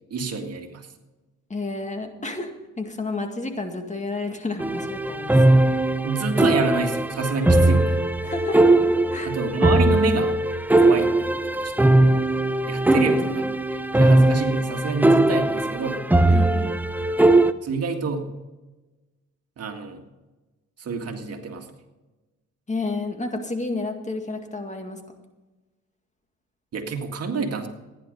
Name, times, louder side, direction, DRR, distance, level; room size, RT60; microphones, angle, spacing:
voice 1, 0.1-0.9 6.0-8.0 9.2-10.4 10.8-11.7 12.7-13.6 14.0-16.0 17.6-18.3 19.6-20.0 20.8-21.7 26.7-27.7, right 4 dB, 55° right, 4 dB, 2.0 m, -28 dB
voice 2, 1.5-2.5 2.8-5.4 8.2-8.6 9.1-9.3 12.9-13.5 16.3-16.8 22.7-25.0, left 3 dB, 25° left, 5 dB, 2.1 m, -31 dB
sound 1, 4.6-17.5, right 2 dB, 5° right, 0.6 m, -19 dB
15.0 x 10.5 x 5.3 m, 1.1 s
cardioid pair, 90°, 30 cm